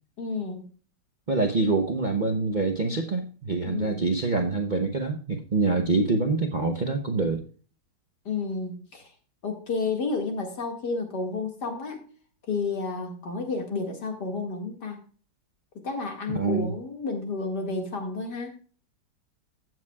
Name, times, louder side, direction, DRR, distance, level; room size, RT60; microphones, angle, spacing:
voice 1, 0.2-0.7 3.6-4.1 8.3-9.0 9.4-12.0 12.5-15.0 15.8-18.5, left 4 dB, 55° left, 3 dB, 2.4 m, -31 dB
voice 2, 1.3-7.4 16.3-16.7, right 3 dB, 85° right, 4 dB, 0.4 m, -25 dB
15.0 x 7.9 x 2.3 m, 0.39 s
omnidirectional pair, 2.2 m